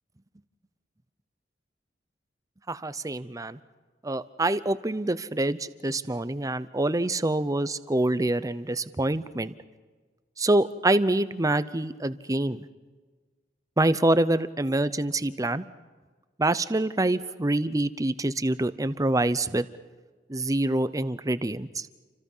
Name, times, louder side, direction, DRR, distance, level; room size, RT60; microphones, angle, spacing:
voice 1, 2.7-3.6 4.0-9.5 10.4-12.6 13.8-15.6 16.4-19.7 20.3-21.9, right 2 dB, 20° right, 14 dB, 0.7 m, -26 dB
29.5 x 25.5 x 5.6 m, 1.4 s
head